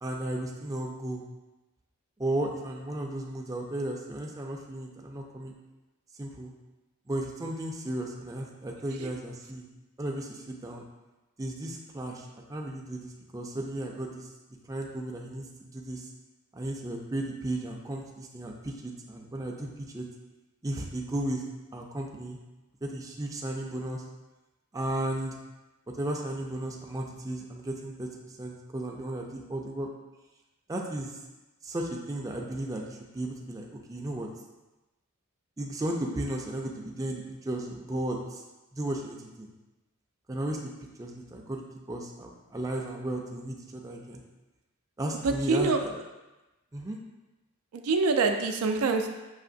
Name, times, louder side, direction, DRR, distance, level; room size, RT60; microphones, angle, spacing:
voice 1, 0.0-1.2 2.2-5.6 6.2-6.5 7.1-9.7 10.0-10.8 11.4-14.3 14.7-16.1 16.5-20.1 20.6-21.4 21.7-22.4 22.8-24.0 24.7-25.4 26.0-28.1 28.4-29.9 30.7-31.1 31.6-34.3 35.6-38.4 38.7-39.5 40.3-40.6 41.0-44.2 45.0-46.0 46.7-47.0, right 1 dB, 15° right, 0 dB, 0.4 m, -34 dB
voice 2, 45.2-45.8 47.7-49.1, right 4 dB, 85° right, 5 dB, 0.4 m, -25 dB
5.7 x 2.9 x 2.6 m, 1.1 s
head